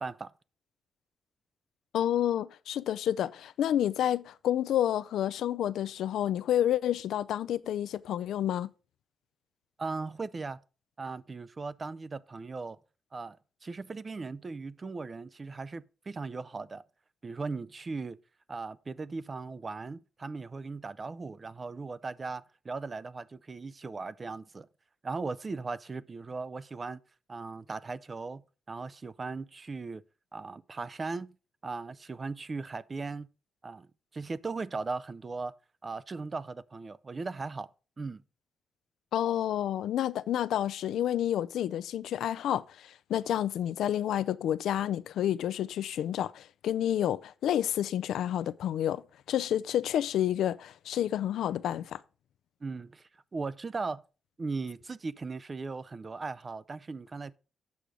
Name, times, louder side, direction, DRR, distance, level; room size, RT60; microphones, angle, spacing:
voice 1, 0.0-0.3 9.8-10.6 11.0-12.8 13.1-16.8 17.2-18.2 18.5-24.7 25.0-27.0 27.3-28.4 28.7-30.0 30.3-31.3 31.6-33.3 33.6-33.9 34.1-35.5 35.8-37.7 38.0-38.2 52.6-54.0 54.4-57.4, right 4 dB, 30° right, 0.4 m, -38 dB
voice 2, 1.9-8.7 39.1-49.0 49.3-52.0, left 11 dB, 90° left, 0.4 m, -29 dB
8.4 x 6.2 x 5.0 m
cardioid pair, 125°, 0 cm